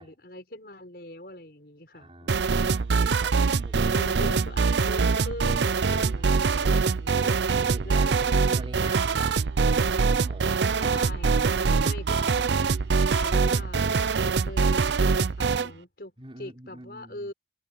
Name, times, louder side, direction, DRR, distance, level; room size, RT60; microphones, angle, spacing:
voice 1, 0.0-2.4 3.4-3.6 3.9-7.4 7.8-8.7 10.8-13.8 14.2-17.3, left 1 dB, 60° left, 5.8 m, -42 dB
voice 2, 1.9-4.2 6.2-7.0 7.6-8.1 8.4-9.4 9.7-11.0 16.2-17.3, right 1 dB, 30° right, 3.6 m, -46 dB
sound 1, 2.3-15.7, right 4 dB, 85° right, 0.6 m, -24 dB
head